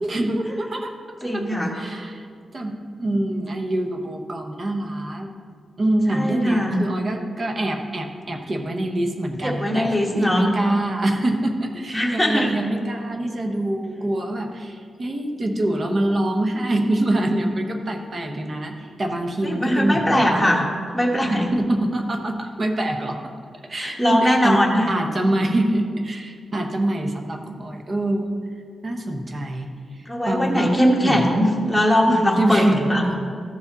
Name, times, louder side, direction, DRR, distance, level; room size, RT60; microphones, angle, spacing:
voice 1, 0.0-0.9 1.3-2.3 2.5-5.3 5.8-20.7 21.3-23.2 23.7-24.6 24.9-28.4 28.8-29.7 30.0-30.7 31.0-31.3 32.4-33.1, right 1 dB, 35° right, 3 dB, 0.9 m, -25 dB
voice 2, 1.2-1.7 6.1-6.8 9.4-10.5 11.9-12.6 19.4-20.6 20.9-21.5 23.7-24.9 30.1-33.0, equal, ahead, -1 dB, 1.1 m, -20 dB
14.0 x 4.8 x 4.0 m, 2.2 s
wide cardioid pair, 145°, 0 cm